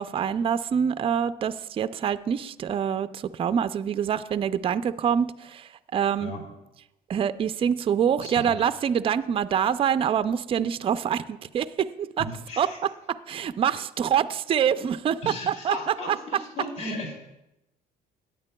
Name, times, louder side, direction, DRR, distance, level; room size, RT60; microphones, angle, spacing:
voice 1, 0.0-6.3 7.1-12.3 12.6-16.4, right 8 dB, 35° right, 13 dB, 0.4 m, -26 dB
voice 2, 8.2-8.6 12.2-12.8 15.2-17.2, left 1 dB, 45° left, -1 dB, 2.6 m, -36 dB
16.5 x 9.6 x 2.2 m, 0.91 s
cardioid pair, 110°, 17 cm